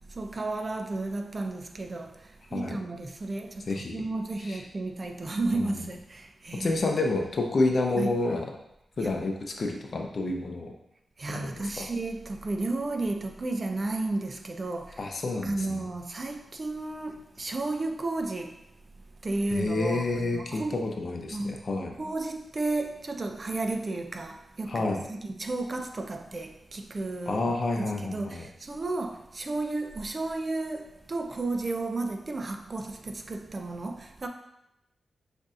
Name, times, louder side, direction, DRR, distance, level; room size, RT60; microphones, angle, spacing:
voice 1, 0.1-6.8 8.0-8.2 9.0-9.2 11.2-15.1 15.4-18.6 19.2-20.8 21.3-21.7 22.0-27.5 27.8-34.3, right 2 dB, 45° right, 0.5 m, -33 dB
voice 2, 3.7-4.0 4.4-4.6 5.5-5.8 6.5-8.5 9.0-10.7 11.3-11.9 15.0-15.8 19.5-21.9 24.7-25.0 27.3-28.4, left 2 dB, 60° left, 0.6 m, -29 dB
6.4 x 2.6 x 2.4 m
cardioid pair, 60°, 0 cm